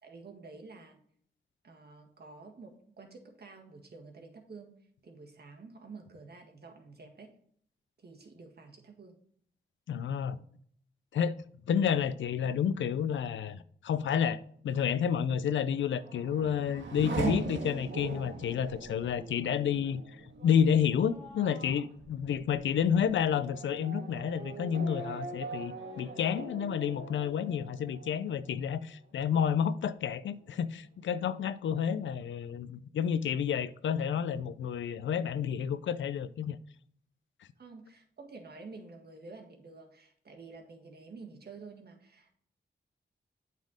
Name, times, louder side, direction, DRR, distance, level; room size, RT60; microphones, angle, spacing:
voice 1, 0.0-1.0 1.6-4.7 5.0-7.3 8.0-9.1 18.9-19.0 37.6-42.3, right 4 dB, 55° right, 1.7 m, -50 dB
voice 2, 9.9-10.4 11.1-11.3 11.7-20.0 20.4-36.6, left 8 dB, 85° left, 0.5 m, -30 dB
Race car auto racing / Accelerating revving vroom, 15.7-28.9 29.3-30.0, right 3 dB, 75° right, 1.6 m, -41 dB
8.1 x 4.3 x 4.9 m
cardioid pair, 55°, 19 cm